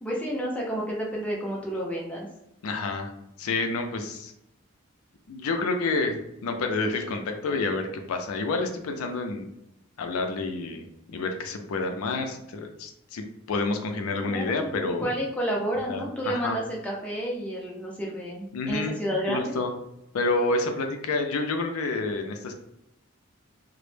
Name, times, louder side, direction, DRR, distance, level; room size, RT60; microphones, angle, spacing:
voice 1, 0.0-2.3 14.3-19.5, equal, 5° left, -3 dB, 0.4 m, -30 dB
voice 2, 2.6-3.1 3.4-4.3 5.3-9.5 10.0-15.1 15.9-16.6 18.5-19.0 19.3-19.7 20.1-22.5, left 3 dB, 80° left, 5 dB, 0.4 m, -29 dB
2.0 x 2.0 x 3.1 m, 0.85 s
head